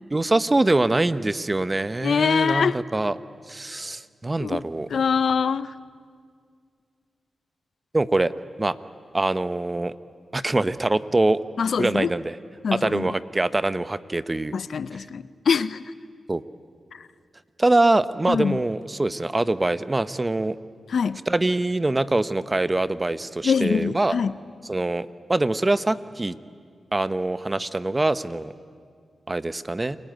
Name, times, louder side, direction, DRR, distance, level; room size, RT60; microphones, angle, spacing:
voice 1, 0.1-3.2 3.5-4.9 7.9-8.3 8.6-8.8 9.1-9.9 10.3-11.4 11.8-12.4 12.7-14.5 16.3-16.4 17.6-20.6 21.3-24.2 24.6-26.4 26.9-28.5 29.3-30.0, right 2 dB, 30° right, 14 dB, 1.0 m, -24 dB
voice 2, 2.0-2.8 4.4-4.6 4.9-5.7 11.6-12.1 12.6-13.1 14.5-15.8 18.3-18.6 20.9-21.2 23.4-24.3, left 6 dB, 75° left, 16 dB, 0.6 m, -23 dB
29.0 x 19.0 x 9.3 m, 2.1 s
cardioid pair, 45°, 0 cm